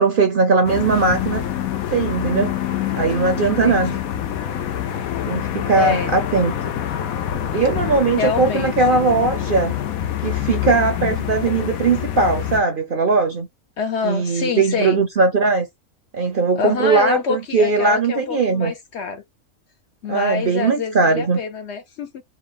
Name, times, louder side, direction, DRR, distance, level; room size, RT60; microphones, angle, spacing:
voice 1, 0.0-1.4 1.9-2.5 2.9-4.0 5.3-6.5 7.5-9.8 10.2-13.5 14.0-15.7 16.1-18.7 20.1-21.4, right 4 dB, 50° right, 0.7 m, -19 dB
sound 1, 0.6-12.6, left 10 dB, 80° left, 1.1 m, -26 dB
voice 2, 3.4-4.0 5.8-6.1 8.2-8.7 13.8-15.0 16.5-19.2 20.0-22.2, left 5 dB, 60° left, 0.8 m, -26 dB
4.4 x 2.2 x 3.6 m
omnidirectional pair, 1.5 m